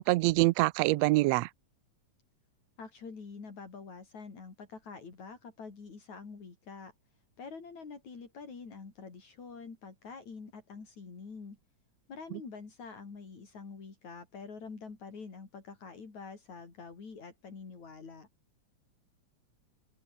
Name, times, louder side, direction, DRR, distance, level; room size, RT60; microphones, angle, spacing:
voice 1, 0.0-1.5, right 20 dB, 80° right, 1.6 m, -25 dB
voice 2, 2.8-6.9 7.4-11.6 12.1-18.3, left 5 dB, 70° left, 6.0 m, -46 dB
open air
omnidirectional pair, 3.3 m